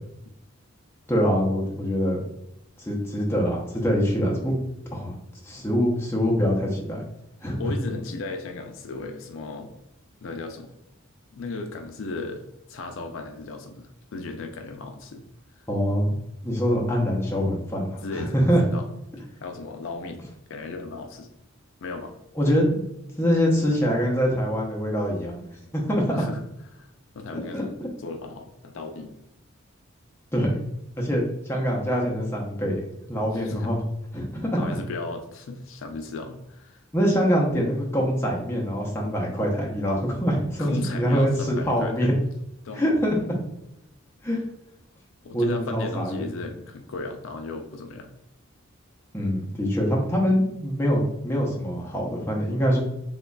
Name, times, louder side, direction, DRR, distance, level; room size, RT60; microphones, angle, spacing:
voice 1, 1.1-2.3 2.8-4.6 4.9-5.2 5.4-7.0 7.4-7.7 15.7-16.2 16.4-18.6 22.4-22.8 23.2-25.4 25.7-26.2 27.3-27.9 30.3-30.6 31.0-33.8 34.1-34.6 36.9-42.1 42.7-43.3 44.2-44.4 45.3-46.2 49.1-52.8, equal, 10° left, -3 dB, 0.6 m, -24 dB
voice 2, 7.6-9.7 10.2-10.7 11.3-12.4 12.7-15.2 15.6-15.7 18.0-18.8 19.4-20.2 20.5-21.3 21.8-22.1 26.1-26.4 26.7-29.1 33.3-33.7 34.5-36.8 40.6-42.2 42.6-42.8 45.2-48.1, left 3 dB, 65° left, 5 dB, 0.4 m, -36 dB
3.8 x 3.0 x 2.2 m, 0.84 s
head